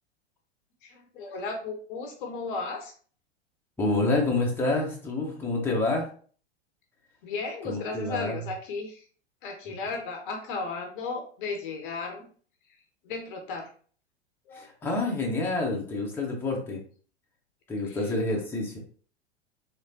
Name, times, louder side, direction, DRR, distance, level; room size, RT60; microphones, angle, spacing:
voice 1, 0.8-2.9 7.2-9.0 9.4-12.3 13.0-13.7 14.5-14.7 17.8-18.0, left 4 dB, 50° left, 3 dB, 0.9 m, -35 dB
voice 2, 3.8-6.1 7.6-8.4 14.5-16.8 17.7-18.8, left 2 dB, 5° left, -2 dB, 1.0 m, -28 dB
3.6 x 3.2 x 2.7 m, 0.43 s
figure-of-eight pair, 95°, 34 cm